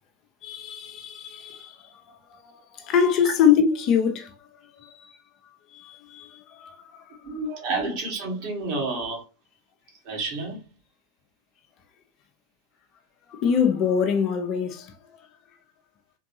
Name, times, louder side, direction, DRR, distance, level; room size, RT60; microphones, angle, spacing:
voice 1, 0.4-2.4 2.7-4.3 4.8-4.9 5.7-7.0 13.3-14.9, left 7 dB, 35° left, 0.7 m, -24 dB
voice 2, 7.2-9.2 10.1-10.6, right 3 dB, 45° right, 2.0 m, -29 dB
3.8 x 3.4 x 2.8 m
figure-of-eight pair, 90°, 0 cm